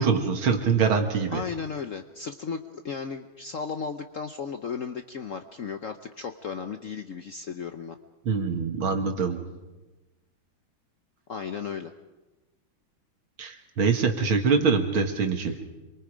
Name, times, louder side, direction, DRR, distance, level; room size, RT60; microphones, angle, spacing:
voice 1, 0.0-1.4 8.3-9.4 13.4-15.6, right 5 dB, 80° right, 5 dB, 2.6 m, -24 dB
voice 2, 1.3-8.0 11.3-11.9 15.4-15.6, left 6 dB, 60° left, 7 dB, 0.9 m, -35 dB
26.5 x 23.5 x 5.1 m, 1.1 s
omnidirectional pair, 2.2 m